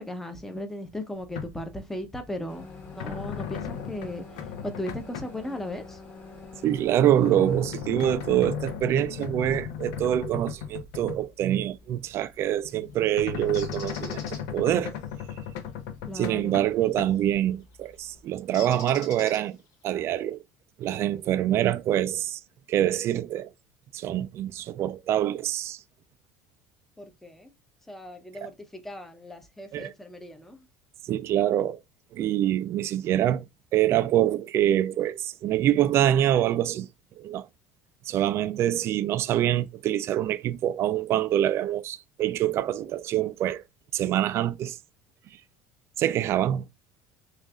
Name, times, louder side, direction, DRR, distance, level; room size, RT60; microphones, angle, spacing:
voice 1, 0.0-2.7 2.9-6.0 16.1-16.6 27.0-27.5 27.9-30.7, left 1 dB, 5° left, 0.7 m, -37 dB
sound 1, 1.2-1.8 2.1-5.3 6.1-11.6 11.9-12.0 12.6-17.4 17.9-18.0, left 8 dB, 80° left, 0.7 m, -36 dB
sound 2, 2.5-7.6, left 3 dB, 30° left, 1.5 m, -46 dB
voice 2, 6.6-14.2 14.5-14.9 16.1-19.6 19.8-20.4 20.8-22.4 22.7-23.5 23.9-25.8 29.7-29.9 31.0-31.8 32.1-33.5 33.7-36.9 37.2-37.5 38.0-43.6 43.9-44.8 46.0-46.6, right 11 dB, 40° right, 0.4 m, -25 dB
Bird, 13.5-14.4 17.0-17.3 18.5-19.7, left 5 dB, 65° left, 2.5 m, -43 dB
6.3 x 2.5 x 2.3 m
cardioid pair, 150°, 7 cm